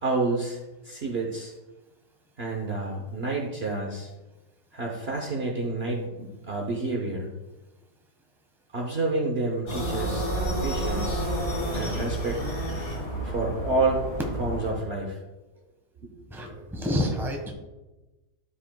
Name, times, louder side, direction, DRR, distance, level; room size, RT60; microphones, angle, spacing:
voice 1, 0.0-1.5 2.4-4.1 4.7-7.3 8.7-11.3 11.7-12.4 13.2-14.0 14.4-15.2 16.0-16.1, right 3 dB, 50° right, 0 dB, 0.9 m, -29 dB
sound 1, 9.7-14.7, right 1 dB, 60° left, 2.9 m, -30 dB
voice 2, 16.3-17.5, equal, ahead, 0 dB, 1.1 m, -28 dB
13.0 x 4.9 x 2.3 m, 1.1 s
omnidirectional pair, 1.7 m